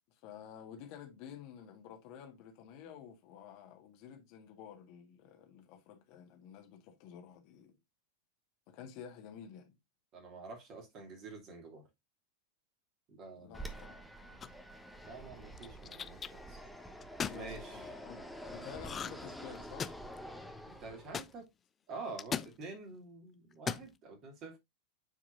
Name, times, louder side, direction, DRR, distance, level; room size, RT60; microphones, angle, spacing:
voice 1, 0.1-7.8 8.7-9.7 13.4-13.9 14.2-14.4 17.2-19.9, left 8 dB, 45° left, 1.7 m, -51 dB
voice 2, 10.1-11.9 13.1-13.7 15.0-16.6 17.3-17.9 20.7-21.5 21.9-24.6, right 3 dB, 35° right, 2.8 m, -48 dB
Fixed-wing aircraft airplane, 13.5-21.3, equal, ahead, 1.1 m, -48 dB
sound 1, 14.4-14.8 15.6-16.3 17.0-17.4 18.8-19.3 19.5-20.2 21.1-21.3 22.2-22.5 23.5-23.9, left 7 dB, 20° left, 0.4 m, -38 dB
9.4 x 4.8 x 2.6 m
figure-of-eight pair, 90°, 0 cm